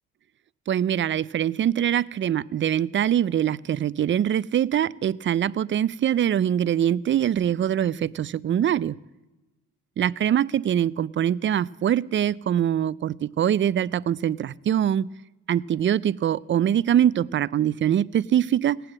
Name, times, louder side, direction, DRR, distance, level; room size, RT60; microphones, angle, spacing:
voice 1, 0.7-9.0 10.0-15.1 15.5-18.8, right 10 dB, 40° right, 0.4 m, -23 dB
18.5 x 9.1 x 7.7 m
cardioid pair, 90°, 30 cm